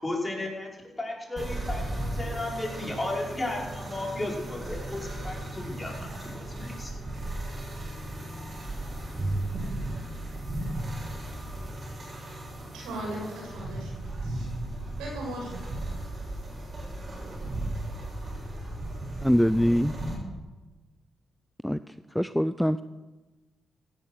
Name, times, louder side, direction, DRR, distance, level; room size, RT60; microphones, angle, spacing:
voice 1, 0.0-6.9, left 2 dB, 25° left, -2 dB, 5.5 m, -34 dB
sound 1, 1.4-20.2, right 1 dB, 45° right, 6.8 m, -36 dB
Bowed string instrument, 9.1-11.5, right 2 dB, 30° right, 3.9 m, -37 dB
voice 2, 12.7-14.5 15.0-15.6, right 1 dB, 85° right, -1 dB, 5.8 m, -38 dB
voice 3, 19.2-20.0 21.6-22.8, equal, 5° left, 13 dB, 0.5 m, -24 dB
16.5 x 11.0 x 6.6 m, 1.2 s
supercardioid pair, 50°, 0 cm